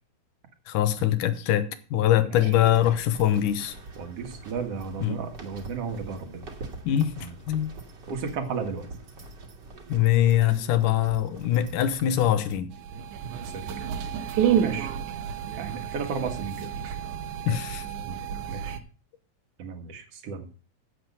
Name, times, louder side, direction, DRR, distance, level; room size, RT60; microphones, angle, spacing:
voice 1, 0.7-3.7 5.0-5.2 6.9-7.7 9.9-12.7 17.5-17.8, left 11 dB, 75° left, 2.5 m, -23 dB
sound 1, 2.3-12.6, right 3 dB, 35° right, 2.3 m, -44 dB
voice 2, 4.0-6.4 7.2-7.3 8.1-8.9 13.4-13.8 14.6-14.9 15.6-17.0 18.1-18.2 18.5-18.8 19.6-20.5, right 5 dB, 50° right, 2.5 m, -34 dB
sound 2, 12.7-18.8, right 9 dB, 70° right, 2.4 m, -30 dB
10.5 x 8.1 x 5.4 m
omnidirectional pair, 3.8 m